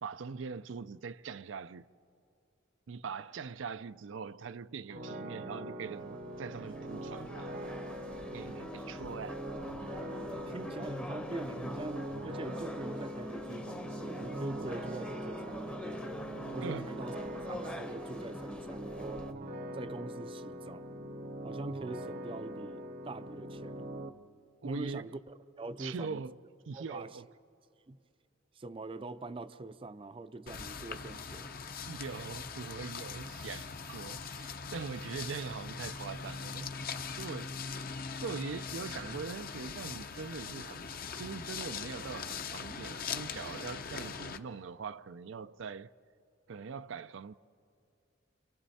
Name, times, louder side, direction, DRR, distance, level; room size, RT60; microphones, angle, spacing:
voice 1, 0.0-1.9 2.9-7.6 8.3-9.4 16.6-16.9 24.6-25.1 25.8-26.4 26.7-27.3 31.9-36.8 37.2-37.8 38.2-40.9 41.1-45.9 46.5-47.3, right 5 dB, 80° right, 0.5 m, -42 dB
sound 1, 4.9-24.1, right 1 dB, 50° right, 0.8 m, -43 dB
sound 2, 6.2-19.3, equal, 5° left, 0.7 m, -43 dB
voice 2, 10.3-16.1 16.5-17.1 17.5-19.3 19.7-20.9 21.4-23.9 24.6-26.2 26.7-27.2 27.9-28.0 28.6-31.5, right 2 dB, 30° right, 0.4 m, -43 dB
sound 3, 30.5-44.4, left 5 dB, 50° left, 0.8 m, -41 dB
29.5 x 26.0 x 4.2 m
head